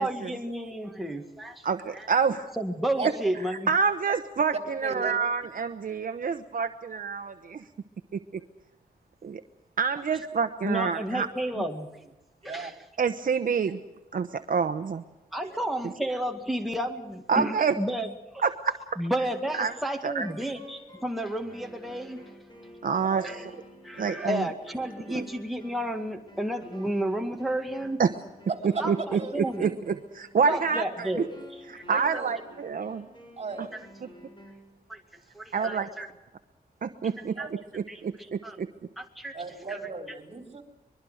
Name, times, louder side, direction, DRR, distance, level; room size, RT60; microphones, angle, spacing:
voice 1, 0.0-1.7 1.9-2.1 2.6-3.7 10.6-12.1 12.4-12.7 15.3-18.5 19.0-22.3 23.2-23.4 23.8-28.0 28.8-29.7 30.5-32.2 34.9-35.0 35.3-36.1 37.0-37.5 37.9-38.6 39.0-39.4 39.7-39.8, right 1 dB, ahead, 3 dB, 1.9 m, -32 dB
voice 2, 1.6-2.5 3.7-7.6 8.1-8.2 9.2-9.4 9.8-11.3 13.0-13.8 14.1-15.0 17.3-17.7 18.4-18.8 19.6-19.7 20.0-20.3 22.8-23.3 24.0-24.4 25.1-25.2 28.0-28.1 28.8-29.2 29.6-31.1 31.7-33.1 35.5-35.9 36.8-37.4 37.7-38.7, right 5 dB, 65° right, 8 dB, 1.0 m, -27 dB
voice 3, 4.8-5.2 12.4-12.7 15.5-15.6 23.0-23.3 28.5-28.9 29.1-29.3 31.9-32.3 33.4-33.7 35.6-35.7 37.4-37.5 39.3-40.6, right 4 dB, 40° right, 5 dB, 3.9 m, -36 dB
sound 1, 19.4-34.7, equal, 30° left, 7.5 m, -50 dB
24.0 x 22.5 x 6.5 m, 0.99 s
wide cardioid pair, 120°, 16 cm